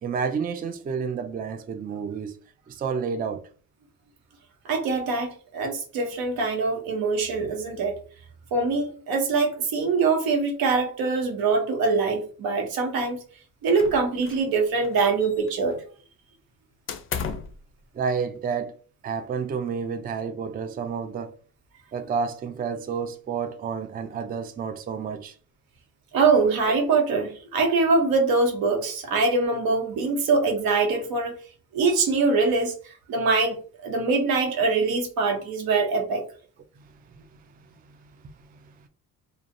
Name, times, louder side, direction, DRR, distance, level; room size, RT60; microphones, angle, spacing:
voice 1, 0.0-2.4 2.7-3.4 17.9-18.7 19.0-21.3 21.9-25.4 26.4-26.5 38.5-38.6, right 6 dB, 25° right, 0.3 m, -30 dB
voice 2, 4.6-8.0 8.5-13.2 13.6-15.8 26.1-31.4 31.7-32.7 33.1-36.2, right 4 dB, 80° right, 0.8 m, -23 dB
sound 1, 13.8-14.5 14.8-15.7 16.9-17.6, left 6 dB, 40° left, 0.4 m, -34 dB
2.5 x 2.1 x 2.5 m
cardioid pair, 85°, 35 cm